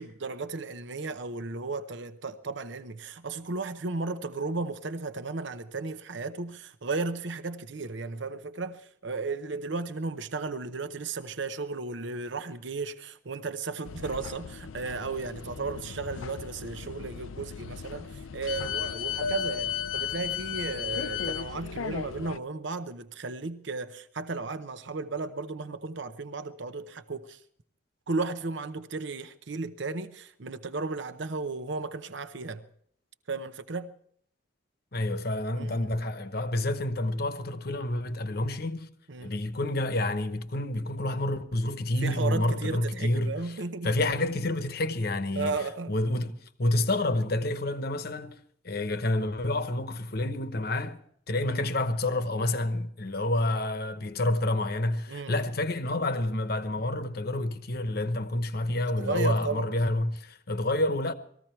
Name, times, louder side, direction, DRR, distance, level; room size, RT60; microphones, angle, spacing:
voice 1, 0.0-27.4 28.1-32.6 33.3-33.9 35.5-35.9 39.1-39.3 42.0-44.0 45.3-46.0 51.5-51.6 55.1-55.4 58.9-59.7, right 3 dB, 65° right, 0.8 m, -34 dB
sound 1, 13.8-22.4, left 8 dB, 90° left, 0.5 m, -35 dB
voice 2, 34.9-38.9 39.2-43.5 43.8-45.6 45.9-48.4 48.6-51.0 51.3-61.1, left 1 dB, 50° left, 1.0 m, -29 dB
20.0 x 15.0 x 4.5 m
head